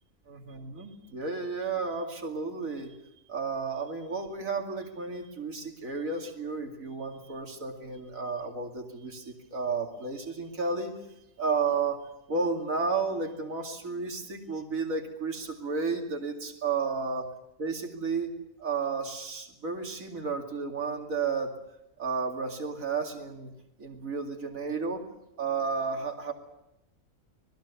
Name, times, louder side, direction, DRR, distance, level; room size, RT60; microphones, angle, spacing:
voice 1, 0.3-3.0 3.3-10.9 11.4-12.0 12.3-17.3 17.6-18.3 18.6-21.5 22.0-23.5 23.8-25.0 25.4-26.3, right 4 dB, 80° right, 2 dB, 2.9 m, -32 dB
26.5 x 20.0 x 7.1 m, 0.86 s
omnidirectional pair, 1.4 m